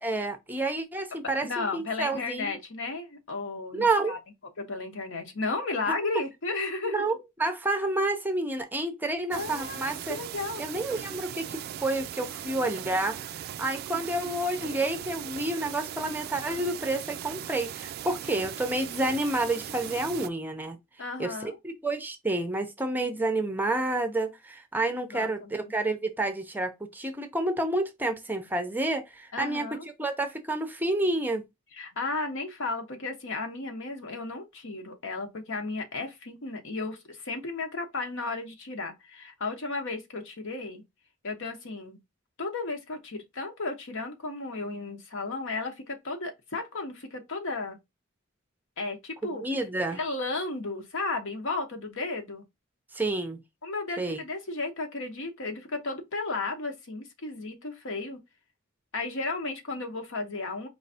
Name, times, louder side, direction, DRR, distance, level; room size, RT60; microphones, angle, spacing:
voice 1, 0.0-2.6 3.7-4.2 6.8-10.2 10.6-13.3 13.6-20.8 21.2-29.7 30.0-31.4 49.2-50.0 52.9-53.4 54.0-54.2, right 2 dB, 10° right, 0.6 m, -29 dB
voice 2, 1.3-4.2 4.6-7.0 9.3-10.6 13.9-14.3 21.0-21.6 25.1-25.7 29.3-29.9 31.7-40.8 41.2-42.0 42.4-47.8 48.8-49.4 49.9-52.4 53.6-58.2 58.9-60.7, left 3 dB, 65° left, 1.1 m, -34 dB
sound 1, 9.3-20.3, right 10 dB, 50° right, 0.3 m, -39 dB
4.7 x 3.2 x 2.7 m
head